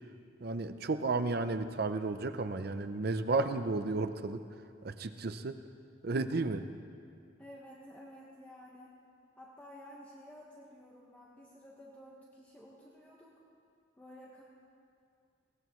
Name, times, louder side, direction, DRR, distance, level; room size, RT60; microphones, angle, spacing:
voice 1, 0.4-4.4 4.8-5.5 6.0-6.7, right 3 dB, 55° right, 10 dB, 0.6 m, -33 dB
voice 2, 7.4-9.0 9.4-13.4 14.0-14.4, equal, 10° left, -5 dB, 1.3 m, -52 dB
21.0 x 18.0 x 3.1 m, 2.4 s
head